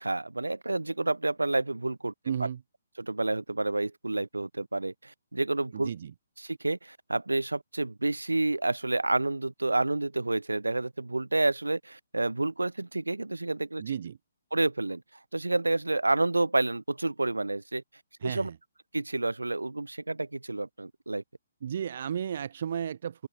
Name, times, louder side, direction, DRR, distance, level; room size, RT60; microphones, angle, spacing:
voice 1, 0.0-2.1 2.4-2.5 3.0-5.9 6.4-13.8 14.5-15.0 15.3-17.8 18.2-18.5 18.9-21.2, right 2 dB, 85° right, 0.7 m, -29 dB
voice 2, 2.2-2.6 5.7-6.1 13.8-14.2 18.2-18.6 21.6-23.3, right 8 dB, 50° right, 0.5 m, -33 dB
open air
figure-of-eight pair, 135°, 0 cm